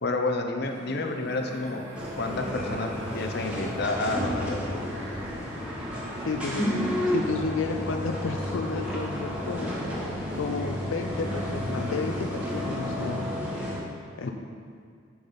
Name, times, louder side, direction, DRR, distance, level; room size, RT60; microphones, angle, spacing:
voice 1, 0.0-1.8 2.2-4.8, left 2 dB, 55° left, 4 dB, 0.7 m, -30 dB
sound 1, 0.6-13.2, equal, 80° right, 1.4 m, -42 dB
sound 2, 1.9-13.8, equal, 5° right, 1.4 m, -31 dB
voice 2, 6.3-6.7 7.1-9.7 10.3-13.3 14.2-14.3, left 4 dB, 90° left, 4 dB, 0.4 m, -32 dB
8.7 x 7.0 x 4.0 m, 2.2 s
head